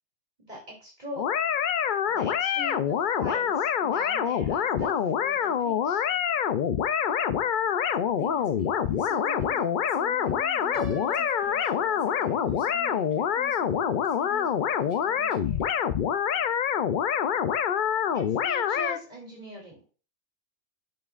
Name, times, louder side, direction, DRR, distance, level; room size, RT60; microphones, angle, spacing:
voice 1, 0.4-1.2 2.1-6.0 18.1-19.9, left 1 dB, 40° right, 3.2 m, -41 dB
sound 1, 1.2-19.0, left 8 dB, 55° left, 0.6 m, -26 dB
voice 2, 7.4-16.6, equal, 15° left, 4.4 m, -46 dB
Piano, 10.7-12.7, left 2 dB, 75° left, 2.1 m, -40 dB
10.5 x 7.0 x 2.5 m
omnidirectional pair, 1.2 m